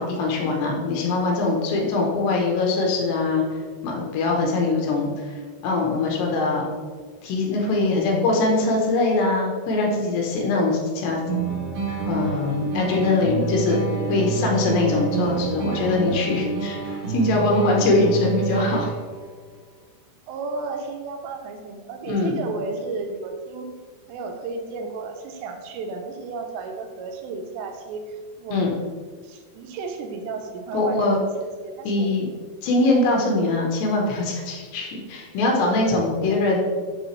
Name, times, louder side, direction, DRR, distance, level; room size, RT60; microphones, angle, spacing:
voice 1, 0.0-3.4 3.8-5.3 5.6-6.7 7.2-11.2 12.1-13.8 14.1-16.8 17.1-18.9 22.1-22.4 28.5-28.7 30.7-31.2 31.9-32.3 32.6-36.6, left 3 dB, 75° left, 0 dB, 3.0 m, -22 dB
sound 1, 11.3-19.2, right 5 dB, 65° right, 1.7 m, -28 dB
voice 2, 20.3-23.7 24.1-28.7 29.2-31.3 31.6-32.1, right 4 dB, 85° right, 4 dB, 2.8 m, -33 dB
8.8 x 4.0 x 3.1 m, 1.5 s
omnidirectional pair, 5.1 m